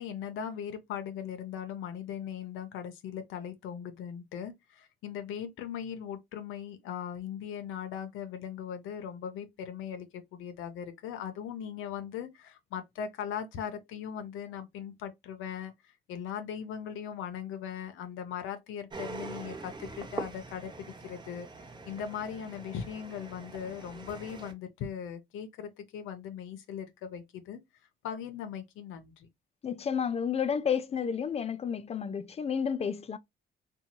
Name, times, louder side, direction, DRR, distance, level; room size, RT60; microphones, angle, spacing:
voice 1, 0.0-27.6 28.0-29.3, left 8 dB, 85° left, 0.6 m, -39 dB
sound 1, 18.9-24.5, right 3 dB, 25° right, 0.7 m, -43 dB
voice 2, 29.6-33.2, left 7 dB, 30° left, 0.4 m, -31 dB
2.7 x 2.3 x 2.8 m
cardioid pair, 90°, 20 cm